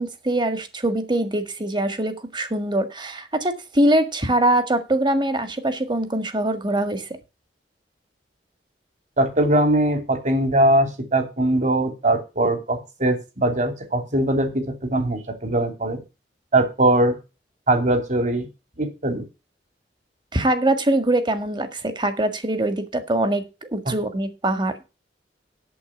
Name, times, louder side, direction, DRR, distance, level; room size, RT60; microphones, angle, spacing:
voice 1, 0.0-7.1 20.3-23.4 23.7-24.7, right 1 dB, 25° right, 1.7 m, -23 dB
voice 2, 9.2-16.0 16.5-17.2 17.7-18.5 18.8-19.2 23.9-24.0, right 1 dB, 45° right, 2.8 m, -21 dB
8.6 x 7.7 x 6.1 m
head